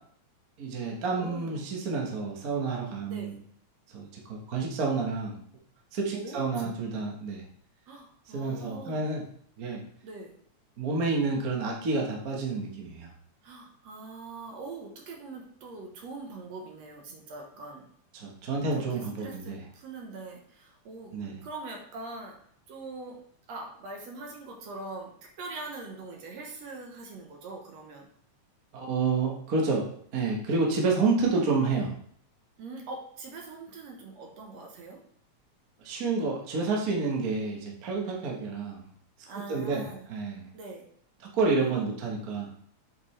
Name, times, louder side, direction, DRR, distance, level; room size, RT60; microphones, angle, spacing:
voice 1, 0.6-3.3 3.9-5.4 5.9-7.4 8.3-9.2 9.6-9.8 10.8-13.1 18.1-19.6 21.1-21.3 28.7-29.9 30.1-31.9 35.8-38.8 39.5-39.8 40.1-40.4 41.3-42.5, right 4 dB, 45° right, -1 dB, 1.2 m, -29 dB
voice 2, 1.2-1.6 3.1-3.4 6.1-6.7 7.9-9.1 10.0-10.3 13.4-17.9 18.7-22.4 22.7-23.2 23.5-28.1 32.6-35.0 39.3-40.1 40.5-40.9 41.6-42.0, right 3 dB, 65° right, 1 dB, 2.0 m, -43 dB
7.4 x 5.3 x 3.2 m, 0.62 s
omnidirectional pair, 3.4 m